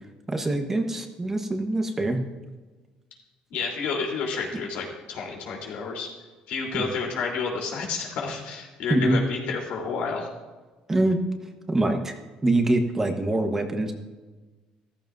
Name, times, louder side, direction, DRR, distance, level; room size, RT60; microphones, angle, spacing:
voice 1, 0.3-2.2 6.7-6.9 8.9-9.2 10.9-11.2 11.7-12.2 12.4-13.9, right 2 dB, 15° right, 5 dB, 1.1 m, -24 dB
voice 2, 3.5-6.1 6.5-10.3, left 5 dB, 80° left, -1 dB, 3.5 m, -30 dB
14.5 x 14.0 x 2.6 m, 1.3 s
cardioid pair, 135°, 2 cm